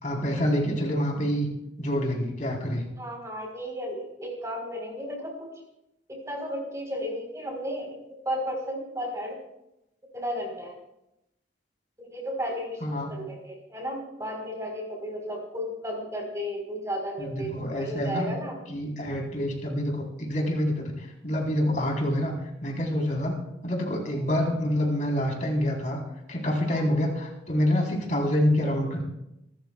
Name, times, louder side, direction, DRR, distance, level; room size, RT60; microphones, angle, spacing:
voice 1, 0.0-1.5 1.8-2.9 12.8-13.1 17.2-18.3 18.7-22.4 22.6-23.4 23.6-26.0 26.3-29.0, equal, 40° left, 0 dB, 3.8 m, -27 dB
voice 2, 3.0-5.5 6.1-8.0 8.2-9.4 10.1-10.8 12.0-18.6 24.1-24.2 26.7-26.9, equal, 15° right, 1 dB, 3.9 m, -34 dB
26.5 x 13.0 x 2.3 m, 0.86 s
head